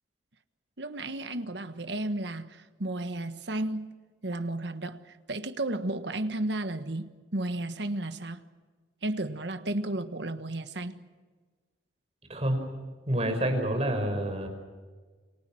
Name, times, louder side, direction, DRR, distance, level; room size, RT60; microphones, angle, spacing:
voice 1, 0.8-3.9 4.2-8.4 9.0-11.0, right 1 dB, 60° right, 1.5 m, -33 dB
voice 2, 13.1-14.5, right 1 dB, 35° right, 5.5 m, -28 dB
29.0 x 24.0 x 6.3 m
head